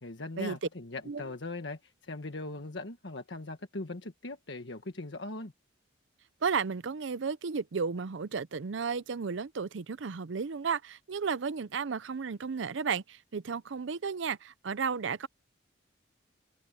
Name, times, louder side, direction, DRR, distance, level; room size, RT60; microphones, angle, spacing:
voice 1, 0.0-5.5, left 2 dB, 70° left, 1.5 m, -40 dB
voice 2, 6.4-15.3, right 5 dB, 75° right, 0.6 m, -33 dB
head